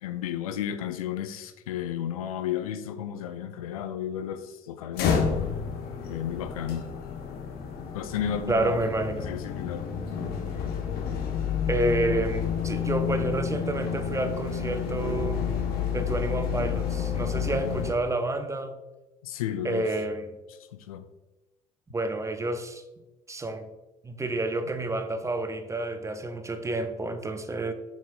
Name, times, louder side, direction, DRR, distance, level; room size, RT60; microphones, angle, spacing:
voice 1, 0.0-5.5 6.1-6.9 7.9-8.9 9.2-9.9 17.6-17.8 19.2-19.9 20.5-21.1, left 10 dB, 75° left, 10 dB, 0.5 m, -33 dB
sound 1, 4.9-17.9, left 7 dB, 55° left, 1.0 m, -30 dB
voice 2, 8.5-9.4 11.7-15.5 15.9-18.8 19.6-20.3 21.9-22.8 23.3-23.7 24.0-27.7, right 2 dB, 15° right, 8 dB, 0.7 m, -29 dB
7.3 x 6.2 x 2.3 m, 1.1 s
figure-of-eight pair, 55°, 19 cm